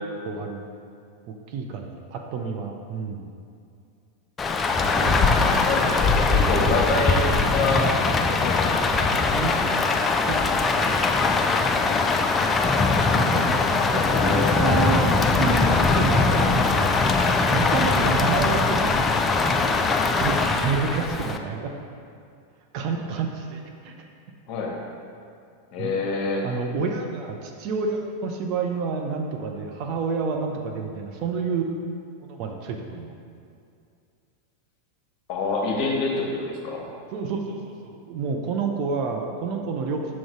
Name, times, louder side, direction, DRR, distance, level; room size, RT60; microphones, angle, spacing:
voice 1, 0.2-0.7 1.3-3.3 5.0-5.4 9.3-9.6 10.3-11.1 13.3-15.6 15.9-16.9 17.5-19.7 20.1-21.7 22.7-23.9 25.8-25.9 26.4-31.8 32.2-33.1 37.1-40.1, right 5 dB, 45° right, 2 dB, 0.6 m, -29 dB
Rain, 4.4-21.4, left 3 dB, 20° left, 0.4 m, -21 dB
voice 2, 5.4-7.9 8.2-9.5 13.8-14.6 24.5-24.7 25.7-26.4 35.3-36.9, left 3 dB, 40° left, -1 dB, 1.2 m, -27 dB
6.2 x 3.9 x 4.7 m, 2.4 s
figure-of-eight pair, 90°, 0 cm